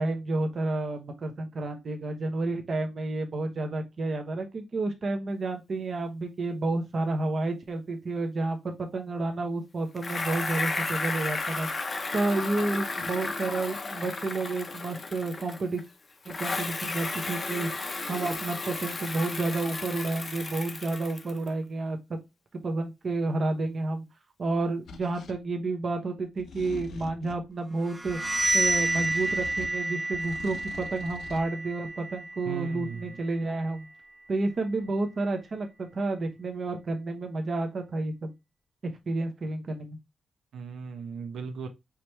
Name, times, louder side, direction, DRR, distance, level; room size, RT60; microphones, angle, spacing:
voice 1, 0.0-11.7 12.1-15.8 16.2-17.7 18.1-22.0 22.6-24.0 24.4-28.2 28.5-33.9 34.3-38.3 39.1-40.0, right 2 dB, 35° right, 0.8 m, -30 dB
Bicycle, 10.0-15.8 16.2-21.5, left 3 dB, 30° left, 0.7 m, -33 dB
sound 1, 24.9-25.4 26.4-27.5 28.1-29.8 30.1-31.5, left 5 dB, 70° left, 0.6 m, -44 dB
sound 2, 27.8-33.5, right 2 dB, 10° right, 0.4 m, -30 dB
voice 2, 32.4-33.2 40.5-41.7, right 6 dB, 85° right, 0.7 m, -37 dB
4.9 x 3.0 x 3.2 m
wide cardioid pair, 175°, 0 cm